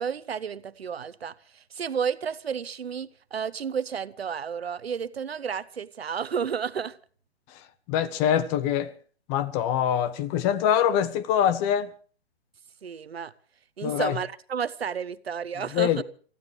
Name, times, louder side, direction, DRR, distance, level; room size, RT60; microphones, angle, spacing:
voice 1, 0.0-7.0 12.8-13.3 13.8-16.0, right 7 dB, 65° right, 1.1 m, -32 dB
voice 2, 7.9-8.9 9.3-11.9 13.8-14.2 15.7-16.0, left 9 dB, 20° left, 0.9 m, -24 dB
28.5 x 15.0 x 3.3 m
figure-of-eight pair, 125°, 33 cm